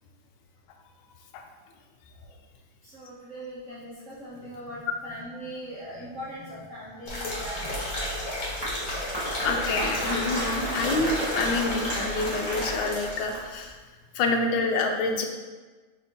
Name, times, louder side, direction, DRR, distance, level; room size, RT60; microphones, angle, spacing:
voice 1, 2.8-8.3, equal, 85° right, -8 dB, 0.6 m, -40 dB
sound 1, 7.1-13.3 13.6-13.7, left 1 dB, 50° left, 1.4 m, -32 dB
Applause, 8.2-13.7, right 1 dB, 30° right, 0.4 m, -34 dB
voice 2, 9.4-13.7 14.1-15.3, left 3 dB, 80° left, 3 dB, 1.3 m, -27 dB
3.5 x 2.7 x 4.1 m, 1.3 s
omnidirectional pair, 2.3 m